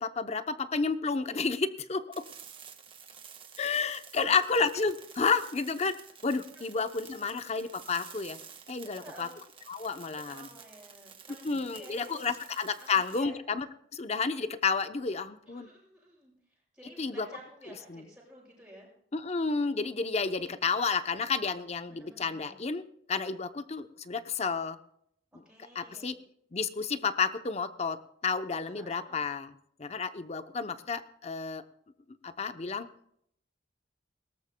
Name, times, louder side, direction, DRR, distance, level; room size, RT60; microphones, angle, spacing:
voice 1, 0.0-2.2 3.6-6.0 6.2-8.4 8.7-9.3 9.7-10.5 11.4-13.7 13.9-15.7 17.0-17.3 17.9-18.0 19.1-22.8 23.1-24.8 25.7-26.2 26.5-29.5 29.8-31.6 32.2-32.9, left 5 dB, 35° left, 11 dB, 0.7 m, -31 dB
sound 1, 2.1-13.2, right 7 dB, 30° right, 1.4 m, -51 dB
voice 2, 9.0-9.3 10.3-12.5 12.8-13.4 15.5-18.9 21.9-22.6 25.3-26.1 28.7-29.2, right 1 dB, 5° right, -5 dB, 7.6 m, -53 dB
21.0 x 18.0 x 2.2 m, 0.70 s
head